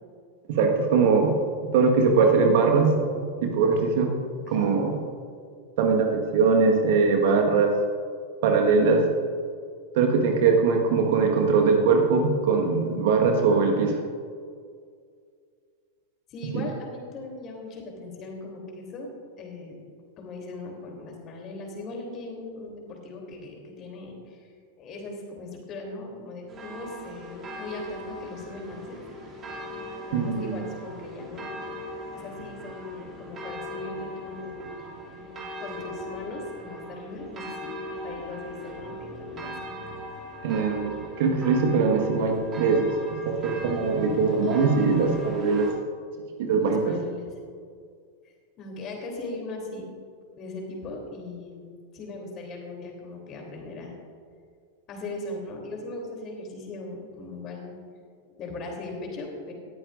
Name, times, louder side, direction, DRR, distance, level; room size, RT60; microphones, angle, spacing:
voice 1, 0.5-1.4 1.7-3.0 3.4-4.1 4.5-5.0 5.8-7.7 8.4-9.0 9.9-14.0 16.5-16.7 30.1-30.7 40.4-42.9 43.2-45.7 46.4-46.9, right 4 dB, 50° right, 2 dB, 1.6 m, -21 dB
voice 2, 16.3-19.1 19.4-19.8 20.2-24.5 24.8-29.0 30.1-31.6 32.1-34.7 35.1-35.2 35.6-37.8 38.0-39.7 44.4-44.7 46.6-47.3 48.2-49.9 50.4-51.7 51.9-53.9 54.9-57.8 58.2-59.5, left 2 dB, 35° left, 1 dB, 3.2 m, -39 dB
sound 1, 26.5-45.7, left 1 dB, 25° right, 2.7 m, -39 dB
19.0 x 13.5 x 2.6 m, 2.1 s
figure-of-eight pair, 90°, 0 cm